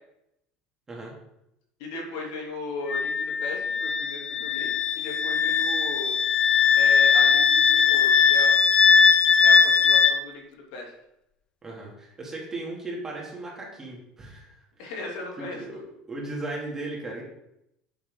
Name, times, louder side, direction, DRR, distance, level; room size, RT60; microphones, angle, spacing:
voice 1, 1.8-6.2 6.7-8.6 9.4-10.9 14.8-15.6, left 2 dB, 80° left, -1 dB, 3.1 m, -37 dB
Wind instrument woodwind instrument, 2.9-10.2, left 6 dB, 30° left, 0.5 m, -20 dB
voice 2, 11.6-14.5 14.8-14.9 15.4-15.8 16.1-17.2, right 2 dB, 15° right, -3 dB, 2.9 m, -36 dB
9.6 x 7.6 x 3.9 m, 0.83 s
cardioid pair, 140°, 3 cm